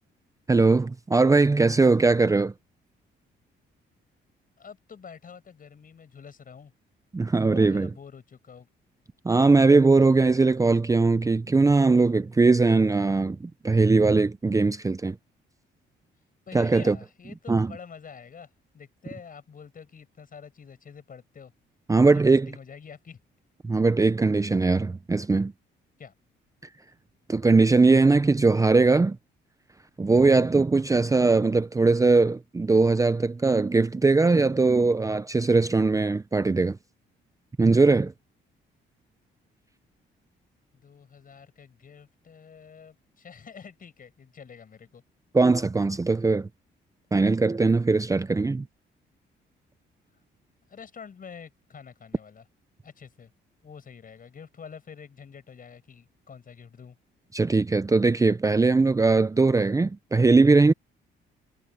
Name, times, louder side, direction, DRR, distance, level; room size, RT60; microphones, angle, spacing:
voice 1, 0.5-2.5 7.1-7.9 9.2-15.2 16.5-17.0 17.5-17.7 21.9-22.5 23.6-25.5 27.3-29.2 30.0-36.8 37.6-38.1 45.3-46.5 47.1-48.7 57.3-60.7, right 3 dB, 15° right, 0.6 m, -20 dB
voice 2, 4.6-6.7 7.4-8.7 16.5-21.5 22.0-23.2 26.0-26.1 40.7-45.0 50.7-52.4 52.8-53.3 53.6-57.0, left 6 dB, 45° left, 5.9 m, -47 dB
cardioid pair, 90°, 20 cm